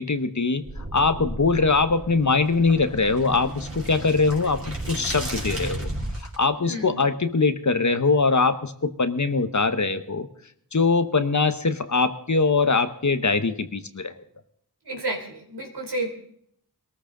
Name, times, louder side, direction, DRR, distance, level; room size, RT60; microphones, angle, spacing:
voice 1, 0.0-5.9 6.2-10.3 10.7-14.1, left 4 dB, 45° left, 10 dB, 1.1 m, -22 dB
sound 1, 0.6-6.4, right 1 dB, 35° right, 3.8 m, -34 dB
voice 2, 6.7-7.0 14.9-16.1, right 1 dB, 80° right, 1 dB, 3.5 m, -31 dB
21.5 x 14.0 x 3.9 m, 0.69 s
cardioid pair, 40°, 40 cm